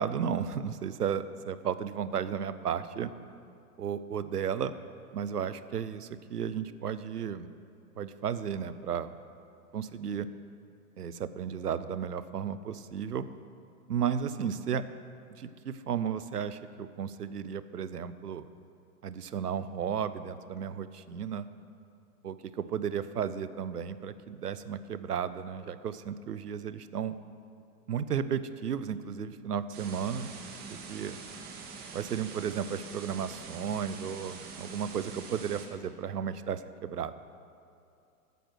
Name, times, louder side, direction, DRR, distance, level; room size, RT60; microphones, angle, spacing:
voice 1, 0.0-3.1 3.8-4.7 5.1-7.5 8.0-9.1 9.7-10.3 11.0-13.3 13.9-14.8 15.4-18.5 19.0-21.5 22.2-27.2 27.9-30.3 30.7-31.2 31.9-37.1, right 8 dB, 80° right, 14 dB, 0.6 m, -34 dB
sound 1, 29.7-35.7, right 4 dB, 20° right, 1.0 m, -44 dB
9.2 x 7.5 x 6.0 m, 2.6 s
figure-of-eight pair, 100°, 46 cm